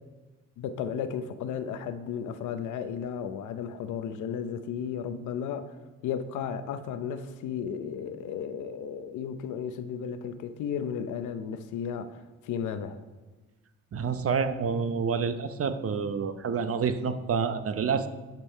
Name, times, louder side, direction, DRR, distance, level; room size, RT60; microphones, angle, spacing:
voice 1, 0.6-5.8 6.0-13.0, left 7 dB, 85° left, 0.7 m, -34 dB
voice 2, 13.9-18.1, right 6 dB, 50° right, 0.8 m, -28 dB
10.5 x 5.3 x 4.5 m
cardioid pair, 70°, 29 cm